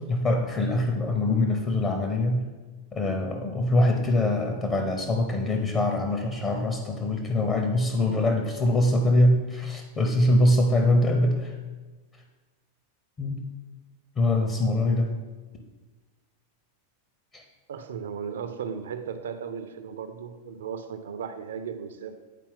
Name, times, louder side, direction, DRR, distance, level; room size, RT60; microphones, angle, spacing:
voice 1, 0.0-2.5 2.9-11.6 13.2-13.4 14.2-15.2 17.3-17.4, left 1 dB, 25° left, 3 dB, 0.7 m, -23 dB
voice 2, 17.7-22.2, right 7 dB, 65° right, 9 dB, 0.5 m, -36 dB
9.2 x 4.3 x 3.6 m, 1.3 s
figure-of-eight pair, 90°, 0 cm